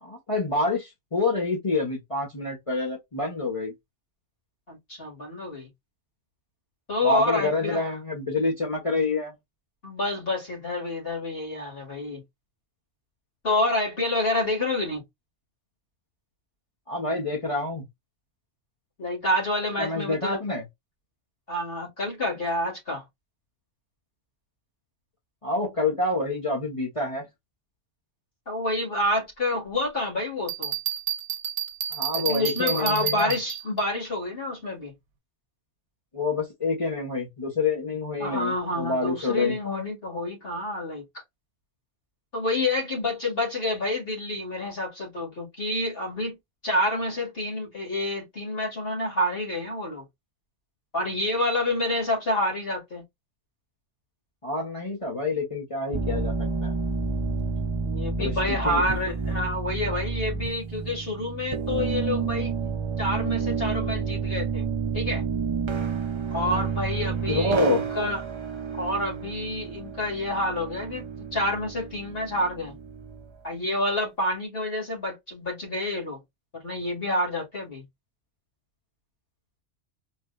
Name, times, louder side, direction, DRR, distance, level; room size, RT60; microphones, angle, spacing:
voice 1, 0.0-3.7 7.0-9.3 16.9-17.8 19.8-20.6 25.4-27.2 31.9-33.3 36.1-39.6 54.4-56.3 56.6-56.7 58.2-58.8 67.3-67.8, left 3 dB, 30° left, 1.3 m, -27 dB
voice 2, 4.7-5.7 6.9-7.8 9.8-12.2 13.4-15.0 19.0-20.4 21.5-23.0 28.5-30.7 32.1-34.9 38.2-41.2 42.3-46.4 46.6-50.0 50.9-53.0 57.8-62.5 63.0-64.7 64.9-65.2 66.3-68.2 68.7-72.8 73.4-76.2 76.5-77.8, left 1 dB, 50° left, 2.2 m, -28 dB
Bell, 30.5-33.8, right 9 dB, 70° right, 1.0 m, -30 dB
sound 1, 55.9-73.3, right 5 dB, 35° right, 0.4 m, -30 dB
4.6 x 2.6 x 2.4 m
omnidirectional pair, 1.2 m